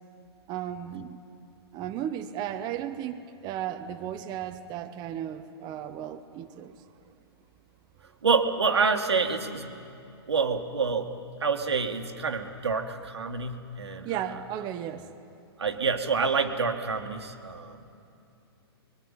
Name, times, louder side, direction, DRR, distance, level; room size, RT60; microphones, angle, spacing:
voice 1, 0.5-1.2 1.7-6.8 14.0-15.1, right 10 dB, 30° right, 6 dB, 1.1 m, -35 dB
voice 2, 8.2-9.7 10.3-11.1 11.4-14.1 15.6-17.8, right 5 dB, 85° right, 4 dB, 2.0 m, -27 dB
26.0 x 23.0 x 9.2 m, 2.6 s
hypercardioid pair, 120°, 14 cm